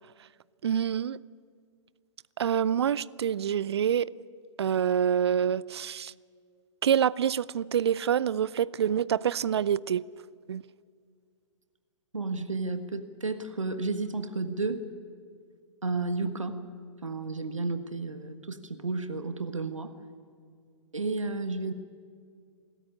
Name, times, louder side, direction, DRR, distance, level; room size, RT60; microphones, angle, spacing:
voice 1, 0.6-1.2 2.4-4.1 4.6-6.1 6.8-10.1 10.5-10.6, right 9 dB, 55° right, 0.5 m, -26 dB
voice 2, 12.1-14.9 15.8-16.6 17.0-20.0 20.9-21.7, right 3 dB, 80° right, 1.5 m, -32 dB
25.5 x 14.0 x 9.9 m
figure-of-eight pair, 115°, 16 cm